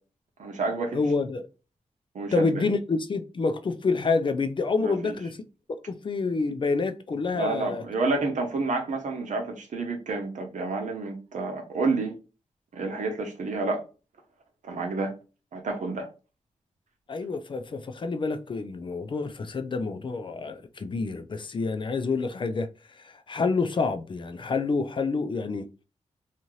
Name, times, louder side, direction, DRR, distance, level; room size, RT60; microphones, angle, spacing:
voice 1, 0.4-1.0 2.1-2.6 4.8-5.2 7.3-12.1 12.7-13.8 14.6-15.1 15.5-16.1, right 3 dB, 85° right, 0.8 m, -29 dB
voice 2, 0.9-1.5 2.3-5.4 5.9-7.8 17.1-22.7 23.0-25.7, left 4 dB, 40° left, 0.4 m, -28 dB
2.7 x 2.5 x 3.0 m
wide cardioid pair, 110°, 13 cm